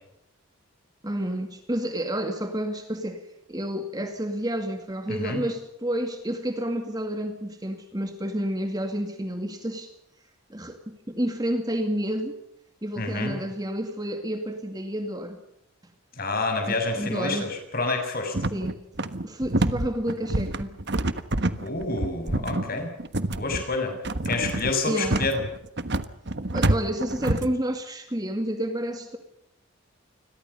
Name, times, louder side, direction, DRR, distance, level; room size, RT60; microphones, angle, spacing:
voice 1, 1.0-3.2 3.5-9.9 10.5-12.4 12.8-15.4 16.7-17.5 18.5-18.8 19.2-20.8 24.9-25.2 26.5-29.2, right 1 dB, 15° right, 2.1 m, -30 dB
voice 2, 5.1-5.4 13.0-13.4 16.1-18.4 21.6-22.9 23.3-24.0 24.2-25.4, left 3 dB, 40° left, 6.6 m, -28 dB
sound 1, 18.3-27.5, right 2 dB, 50° right, 1.3 m, -27 dB
28.5 x 21.5 x 5.5 m
head